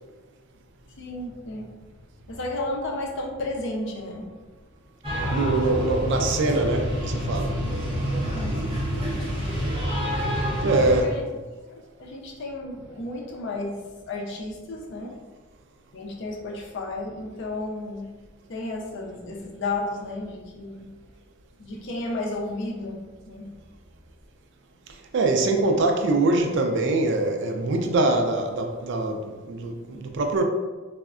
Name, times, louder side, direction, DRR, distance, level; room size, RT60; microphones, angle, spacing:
voice 1, 0.9-1.8 2.3-4.4 8.1-8.9 10.9-11.2 11.7-15.2 15.9-18.1 18.5-21.0 21.6-23.5 25.4-25.7, left 2 dB, 60° left, 0 dB, 0.5 m, -33 dB
sound 1, 5.0-11.0, equal, 25° right, 0.7 m, -27 dB
voice 2, 5.3-7.5 10.6-11.1 25.1-30.4, right 2 dB, 60° right, 4 dB, 0.3 m, -23 dB
3.5 x 2.1 x 2.4 m, 1.3 s
head